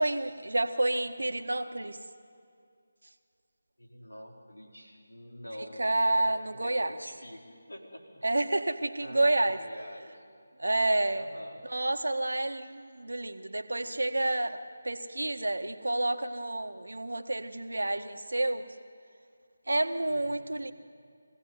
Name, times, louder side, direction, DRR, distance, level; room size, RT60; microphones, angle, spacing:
voice 1, 0.0-2.0 5.8-6.9 8.2-9.6 10.6-11.2 11.6-14.6 14.8-18.6 19.7-20.7, right 2 dB, 75° right, 7 dB, 1.6 m, -29 dB
voice 2, 3.8-7.4 7.7-8.2 8.6-8.7 9.0-10.2 11.1-11.6 20.1-20.5, equal, 85° left, 0 dB, 4.6 m, -47 dB
24.0 x 16.5 x 9.6 m, 2.4 s
figure-of-eight pair, 160°, 0 cm